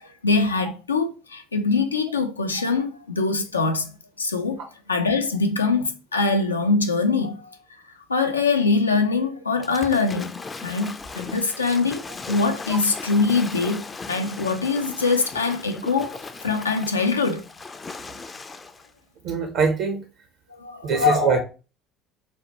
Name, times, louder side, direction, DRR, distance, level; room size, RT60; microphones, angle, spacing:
voice 1, 0.0-4.6 4.9-7.5 8.1-10.4 10.6-12.0 12.3-17.4 20.5-20.9, left 4 dB, 85° left, 0.4 m, -23 dB
Waves surf / Splash splatter, 9.6-18.9, left 4 dB, 25° left, 0.4 m, -38 dB
voice 2, 19.2-20.0 20.8-21.4, right 1 dB, 60° right, 0.5 m, -21 dB
4.1 x 2.1 x 2.8 m
figure-of-eight pair, 60°, 0 cm